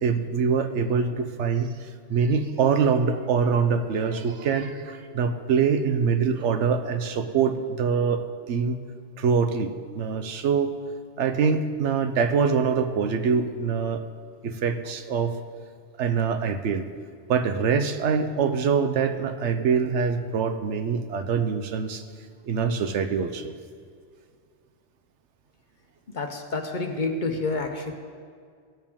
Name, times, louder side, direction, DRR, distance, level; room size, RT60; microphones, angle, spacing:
voice 1, 0.0-8.2 8.5-8.8 9.2-10.7 11.2-14.0 14.4-15.3 16.0-16.8 17.3-22.0 22.4-23.5, right 6 dB, 75° right, 8 dB, 1.0 m, -24 dB
voice 2, 26.1-27.9, left 3 dB, 45° left, 4 dB, 0.9 m, -28 dB
16.5 x 7.2 x 3.6 m, 2.1 s
omnidirectional pair, 1.2 m